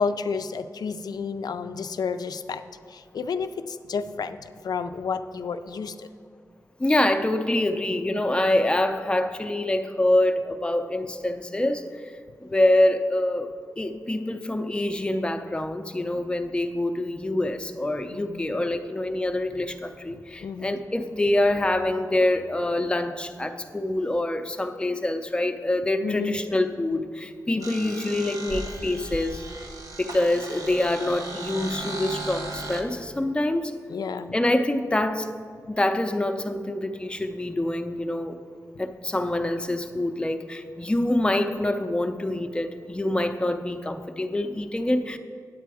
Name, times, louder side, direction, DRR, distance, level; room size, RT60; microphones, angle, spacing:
voice 1, 0.0-2.6 2.9-6.1 18.1-18.6 20.4-20.8 26.0-26.4 27.5-27.7 33.9-34.4, left 5 dB, 80° left, 10 dB, 0.4 m, -31 dB
voice 2, 6.8-12.1 12.4-13.5 13.8-29.5 30.0-33.7 34.3-35.3 35.7-38.4 38.8-45.2, left 1 dB, 15° left, 7 dB, 0.5 m, -25 dB
sound 1, 27.6-32.8, right 2 dB, 65° right, 1.2 m, -36 dB
9.2 x 8.4 x 4.8 m, 2.1 s
wide cardioid pair, 145°, 7 cm